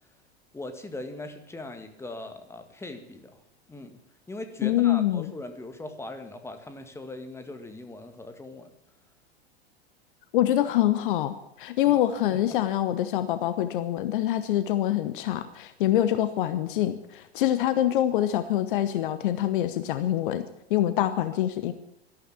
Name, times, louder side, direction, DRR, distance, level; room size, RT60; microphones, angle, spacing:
voice 1, 0.5-3.4 3.7-4.0 4.3-8.7 11.9-12.0 12.3-12.4, left 2 dB, 10° left, 8 dB, 1.9 m, -40 dB
voice 2, 4.6-5.3 10.3-21.7, left 12 dB, 55° left, 12 dB, 1.0 m, -25 dB
13.0 x 12.0 x 8.7 m, 0.82 s
figure-of-eight pair, 85°, 32 cm